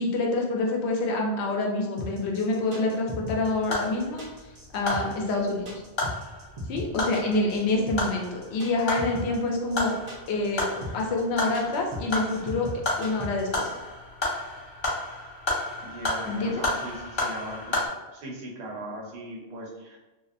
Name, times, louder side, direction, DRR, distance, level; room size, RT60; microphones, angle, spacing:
voice 1, 0.0-4.2 4.7-5.8 6.7-10.0 10.3-10.7 10.9-12.7 13.0-13.7 16.3-16.6, left 2 dB, 90° left, 0 dB, 0.9 m, -27 dB
sound 1, 2.0-13.7, left 1 dB, 40° right, 0.5 m, -37 dB
sound 2, 3.2-17.9, left 2 dB, 35° left, 0.5 m, -33 dB
voice 2, 15.8-17.8 18.1-20.0, right 1 dB, 80° right, -2 dB, 0.9 m, -39 dB
2.7 x 2.1 x 2.4 m, 1.1 s
omnidirectional pair, 1.1 m